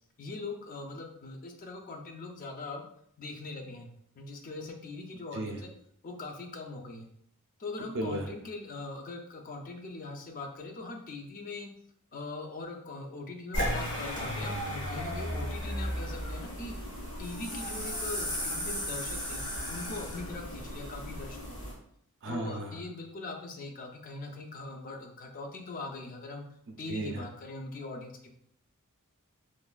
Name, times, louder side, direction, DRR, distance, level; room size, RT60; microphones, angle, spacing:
voice 1, 0.2-2.9 3.2-3.9 4.2-5.7 6.0-7.1 7.6-11.7 12.1-16.8 17.2-19.4 19.7-21.7 22.2-26.5 26.8-28.3, left 3 dB, 40° left, 3 dB, 0.4 m, -41 dB
voice 2, 7.9-8.3 22.2-22.7 26.9-27.2, right 1 dB, 55° right, 2 dB, 0.4 m, -34 dB
sound 1, 13.5-21.7, equal, 80° left, 1.2 m, -35 dB
3.1 x 2.2 x 2.3 m, 0.68 s
head